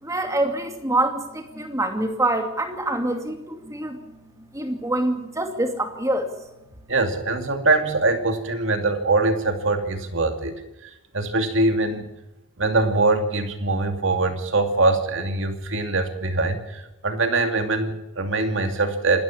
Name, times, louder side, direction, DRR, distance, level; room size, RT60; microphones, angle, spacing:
voice 1, 0.0-4.0 4.5-6.3, right 1 dB, 15° right, 5 dB, 2.5 m, -25 dB
voice 2, 6.9-10.5 10.8-12.1 12.6-19.2, right 3 dB, 65° right, 6 dB, 2.6 m, -23 dB
27.0 x 13.5 x 7.3 m, 0.95 s
head